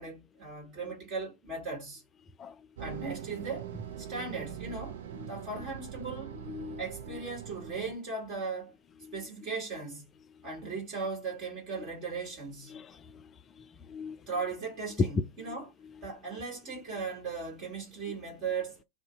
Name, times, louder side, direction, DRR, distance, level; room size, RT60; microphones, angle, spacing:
voice 1, 0.0-2.0 2.8-3.7 4.0-5.0 5.3-6.3 6.8-8.7 9.1-10.1 10.4-12.7 14.3-15.7 16.0-18.8, right 4 dB, 35° right, 1.6 m, -37 dB
sound 1, 2.8-7.9, right 9 dB, 60° right, 0.4 m, -42 dB
voice 2, 6.5-6.8 7.1-7.2 9.0-9.1 12.7-13.3 13.6-14.2, left 6 dB, 25° left, 0.3 m, -44 dB
2.6 x 2.0 x 3.1 m
figure-of-eight pair, 90°, 0 cm